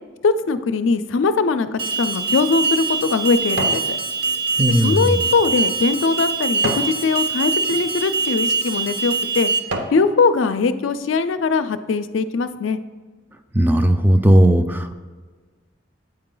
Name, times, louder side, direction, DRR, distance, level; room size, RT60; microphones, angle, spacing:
voice 1, 0.2-4.0 4.7-9.5 9.9-12.8, left 4 dB, 85° left, 10 dB, 0.4 m, -21 dB
Alarm, 1.8-9.6, right 4 dB, 55° right, 0.7 m, -23 dB
sound 1, 2.3-3.9 4.4-7.0 7.6-7.8 8.5-8.7 9.2-10.0 10.5-10.6, right 1 dB, 80° right, 0.8 m, -32 dB
voice 2, 4.6-5.1 13.5-14.9, right 1 dB, 10° right, 7 dB, 0.3 m, -16 dB
8.7 x 4.7 x 3.8 m, 1.4 s
head